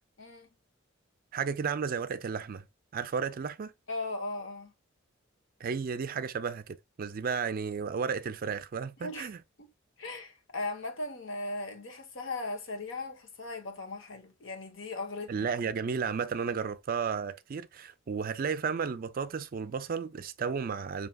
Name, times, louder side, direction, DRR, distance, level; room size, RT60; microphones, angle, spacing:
voice 1, 0.2-0.5 3.9-4.7 9.0-9.3 9.6-9.7 10.0-15.7, left 2 dB, 70° left, 1.0 m, -38 dB
voice 2, 1.3-2.6 2.9-3.7 5.6-9.4 15.3-21.1, right 6 dB, 45° right, 0.4 m, -33 dB
5.8 x 2.8 x 2.2 m
head